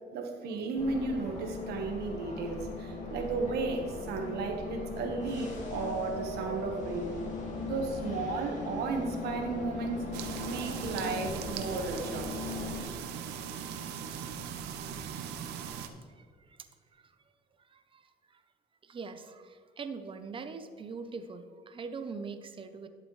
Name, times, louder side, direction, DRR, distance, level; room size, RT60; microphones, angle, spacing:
voice 1, 0.1-7.1 7.6-10.0 10.4-12.3, right 3 dB, 75° right, 3 dB, 1.4 m, -34 dB
sound 1, 0.7-12.8, left 2 dB, 45° left, 2.3 m, -39 dB
sound 2, 10.1-15.9, right 8 dB, 90° right, 0.7 m, -39 dB
voice 2, 16.2-17.1 17.6-18.4 18.8-22.9, right 4 dB, 30° right, 9 dB, 0.7 m, -43 dB
11.0 x 7.6 x 3.3 m, 2.2 s
cardioid pair, 110°, 17 cm